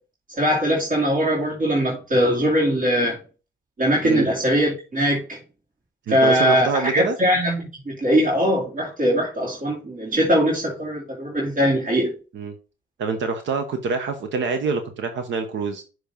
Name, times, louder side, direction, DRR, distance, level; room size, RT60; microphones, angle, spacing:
voice 1, 0.3-3.2 3.8-5.4 6.1-12.1, equal, 40° right, 2.6 m, -21 dB
voice 2, 6.1-7.2 12.3-12.5 13.0-15.8, right 4 dB, 70° right, 1.0 m, -25 dB
6.9 x 3.2 x 5.3 m
cardioid pair, 90°, 20 cm